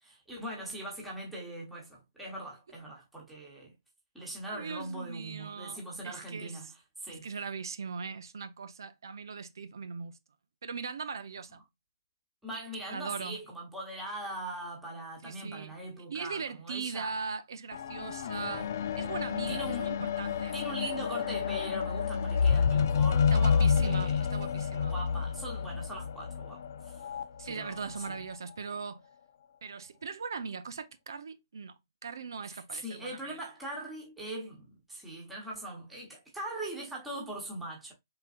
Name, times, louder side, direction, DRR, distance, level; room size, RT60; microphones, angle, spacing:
voice 1, 0.0-3.7 4.1-6.7 7.0-7.3 12.4-17.2 18.0-18.8 19.5-19.9 20.5-24.2 24.8-26.6 26.8-26.9 27.4-27.9 32.4-37.9, right 1 dB, 5° right, 1.2 m, -41 dB
voice 2, 4.4-6.7 7.1-10.2 10.6-11.6 12.9-13.4 15.2-15.7 16.1-20.5 20.8-20.9 23.3-24.9 27.4-29.0 29.6-31.8 32.0-33.5, right 5 dB, 80° right, 0.7 m, -40 dB
sound 1, 17.7-27.2 28.0-28.1, left 6 dB, 45° left, 0.5 m, -29 dB
4.4 x 3.9 x 2.4 m
hypercardioid pair, 180°, 2 cm